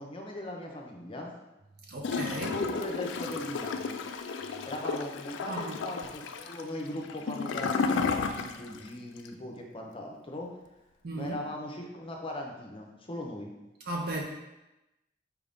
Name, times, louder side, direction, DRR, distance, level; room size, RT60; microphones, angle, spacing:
voice 1, 0.0-1.3 2.5-4.0 4.7-10.6 11.1-13.5, left 1 dB, 30° left, 1 dB, 0.6 m, -39 dB
voice 2, 1.9-2.6 5.5-5.8 11.0-11.4 13.9-14.2, right 2 dB, 55° right, -1 dB, 0.6 m, -35 dB
Gurgling / Toilet flush, 2.0-8.9 9.2-9.3, left 5 dB, 70° left, 0.3 m, -33 dB
4.6 x 2.6 x 3.5 m, 0.98 s
head